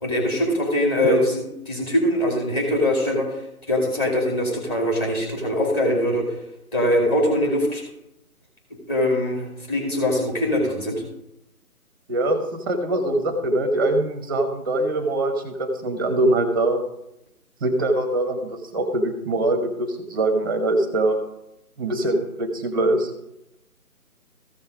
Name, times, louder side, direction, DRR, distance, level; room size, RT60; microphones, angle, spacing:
voice 1, 0.0-3.4 3.7-6.3 6.7-7.8 8.9-11.0, left 1 dB, 15° left, -1 dB, 2.3 m, -22 dB
voice 2, 12.1-12.4 12.7-16.8 17.6-21.2 21.8-23.1, right 2 dB, 15° right, 5 dB, 1.0 m, -23 dB
14.5 x 5.4 x 5.0 m, 0.84 s
figure-of-eight pair, 160°, 45 cm